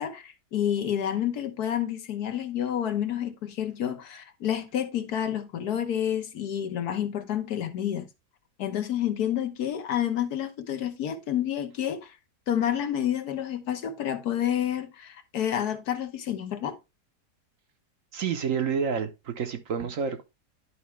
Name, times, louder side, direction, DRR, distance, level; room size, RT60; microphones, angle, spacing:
voice 1, 0.0-8.1 8.6-12.2 12.5-16.8, left 10 dB, 70° left, 1.4 m, -29 dB
voice 2, 18.1-20.2, right 6 dB, 60° right, 1.1 m, -29 dB
11.5 x 4.7 x 3.1 m
omnidirectional pair, 1.7 m